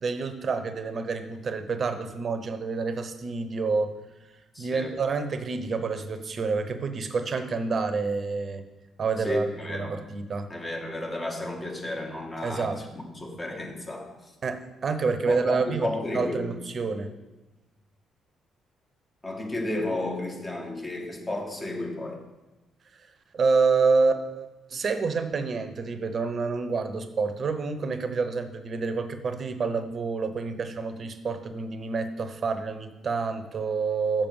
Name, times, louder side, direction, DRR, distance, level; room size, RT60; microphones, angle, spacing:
voice 1, 0.0-3.9 4.6-8.6 9.0-10.5 12.4-12.8 14.4-17.1 23.3-34.3, right 4 dB, 45° right, 10 dB, 0.9 m, -28 dB
voice 2, 4.5-4.9 9.2-10.0 10.5-14.1 15.3-16.6 19.2-22.2, left 1 dB, 25° left, 1 dB, 2.0 m, -32 dB
6.9 x 5.5 x 7.1 m, 1.1 s
hypercardioid pair, 45°, 0 cm